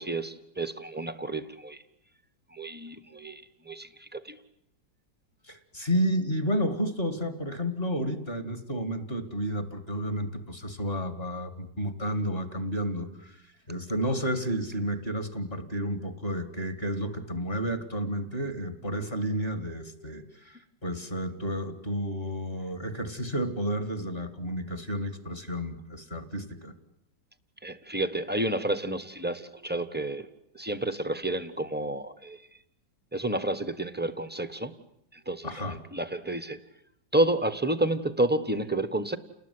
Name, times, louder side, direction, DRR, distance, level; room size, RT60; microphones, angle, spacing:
voice 1, 0.0-1.8 2.5-4.4 27.6-30.3 30.5-32.4 33.1-34.8 35.1-35.5 35.9-36.6 37.1-39.2, right 1 dB, 5° right, 12 dB, 1.0 m, -30 dB
voice 2, 5.5-13.4 13.7-26.7 35.4-35.8, equal, 30° left, 8 dB, 2.6 m, -31 dB
30.0 x 20.0 x 9.8 m, 0.77 s
omnidirectional pair, 2.1 m